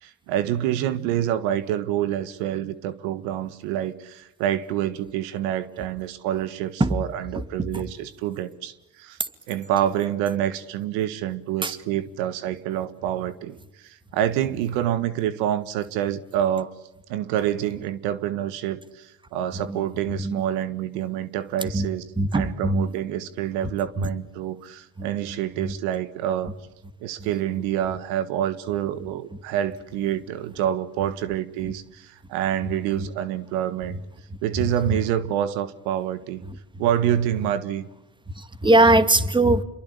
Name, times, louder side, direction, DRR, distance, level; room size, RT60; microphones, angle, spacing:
voice 1, 0.0-9.2 9.5-16.7 17.1-22.0 22.3-26.5 27.0-34.0 34.4-36.4 36.8-37.9, right 11 dB, 80° right, 15 dB, 1.7 m, -27 dB
voice 2, 7.3-7.9 9.2-9.3 11.6-11.7 19.5-20.4 21.6-21.9 22.2-22.9 24.0-24.1 25.0-25.8 27.2-27.3 30.0-30.1 30.6-30.7 31.0-31.1 31.6-31.7 32.6-33.1 33.9-34.0 34.5-35.0 36.4-36.9 37.3-37.4 38.4-39.6, right 2 dB, 10° right, 12 dB, 2.2 m, -23 dB
28.0 x 23.0 x 8.4 m, 0.92 s
supercardioid pair, 85°, 41 cm